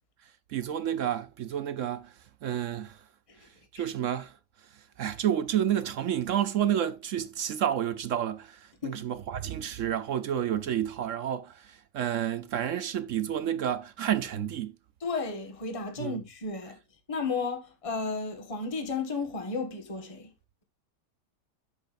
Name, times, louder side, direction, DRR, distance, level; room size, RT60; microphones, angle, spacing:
voice 1, 0.5-2.1 2.4-3.0 3.7-4.3 5.0-14.7 16.0-16.2, right 10 dB, 60° right, 0.8 m, -30 dB
voice 2, 15.0-16.8 17.1-20.3, left 4 dB, 20° left, 1.5 m, -33 dB
11.0 x 7.9 x 2.5 m
omnidirectional pair, 1.8 m